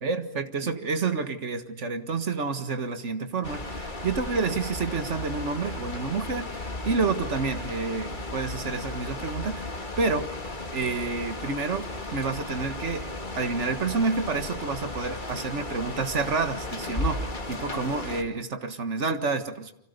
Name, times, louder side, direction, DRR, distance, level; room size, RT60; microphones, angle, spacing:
voice 1, 0.0-10.3 10.7-19.7, right 4 dB, 75° right, 8 dB, 1.9 m, -29 dB
sound 1, 3.4-18.2, left 2 dB, 40° left, 2.5 m, -35 dB
30.0 x 25.5 x 6.7 m, 0.75 s
omnidirectional pair, 1.2 m